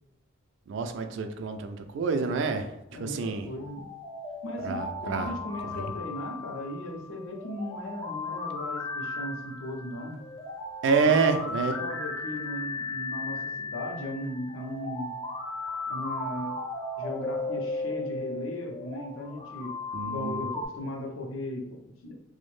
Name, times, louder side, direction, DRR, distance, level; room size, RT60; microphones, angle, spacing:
voice 1, 0.7-2.7 3.0-3.5 4.6-5.3 5.7-5.9 10.8-11.7 19.9-20.4, right 5 dB, 60° right, 7 dB, 0.3 m, -27 dB
voice 2, 2.9-3.8 4.4-10.2 11.0-15.1 15.9-16.6 17.0-19.8 20.0-22.1, left 1 dB, 75° left, 2 dB, 0.5 m, -37 dB
sound 1, 3.5-20.7, left 3 dB, 20° left, 0.4 m, -36 dB
2.5 x 2.0 x 3.1 m, 0.86 s
head